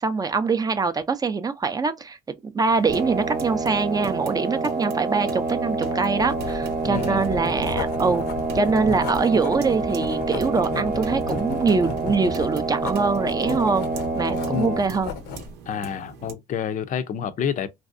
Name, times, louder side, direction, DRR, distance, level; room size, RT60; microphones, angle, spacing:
voice 1, 0.0-2.2 2.4-8.3 8.5-13.9 14.1-15.1, right 4 dB, 20° right, 0.4 m, -24 dB
sound 1, 2.6-16.3, right 6 dB, 90° right, 0.8 m, -42 dB
sound 2, 2.9-14.8, right 3 dB, 55° right, 0.8 m, -27 dB
Writing, 6.2-15.5, left 6 dB, 80° left, 0.7 m, -34 dB
voice 2, 6.8-7.3 14.4-14.8 15.7-17.7, left 7 dB, 50° left, 0.5 m, -28 dB
3.1 x 2.6 x 2.5 m
cardioid pair, 110°, 17 cm